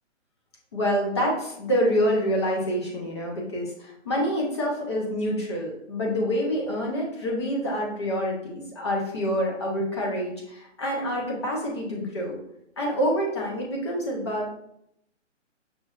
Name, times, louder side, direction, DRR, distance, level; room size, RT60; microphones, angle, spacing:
voice 1, 0.7-12.4 12.8-14.5, equal, 20° left, -2 dB, 0.7 m, -27 dB
6.3 x 2.6 x 2.4 m, 0.75 s
hypercardioid pair, 165°, 37 cm